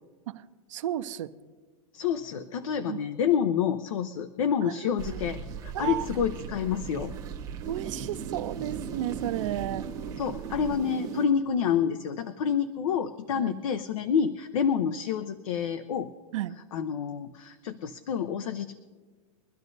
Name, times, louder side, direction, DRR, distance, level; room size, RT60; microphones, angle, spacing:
voice 1, 0.3-1.3 2.9-3.0 4.6-4.9 5.7-6.1 7.7-9.8 13.3-13.6 16.3-16.6, right 13 dB, 60° right, 9 dB, 0.7 m, -33 dB
voice 2, 1.9-7.1 10.2-16.1 16.7-18.7, left 7 dB, 70° left, 10 dB, 0.7 m, -28 dB
sound 1, 5.0-11.2, right 7 dB, 20° right, 1.0 m, -37 dB
23.5 x 12.0 x 2.7 m, 1.4 s
supercardioid pair, 160°, 18 cm